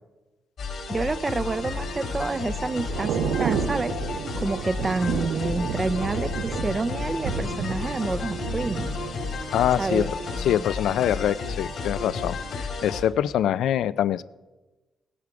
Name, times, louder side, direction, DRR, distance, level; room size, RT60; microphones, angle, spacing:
sound 1, 0.6-13.0, left 4 dB, 65° left, 2.3 m, -32 dB
voice 1, 0.9-3.9 4.4-8.9 9.8-10.1, right 3 dB, 25° right, 15 dB, 0.4 m, -28 dB
Thunder / Rain, 1.2-11.1 11.4-11.7, right 7 dB, 85° right, 0.7 m, -32 dB
voice 2, 9.5-10.1 10.4-14.2, left 10 dB, 90° left, 17 dB, 0.4 m, -24 dB
18.0 x 8.4 x 4.8 m, 1.2 s
cardioid pair, 110°, 0 cm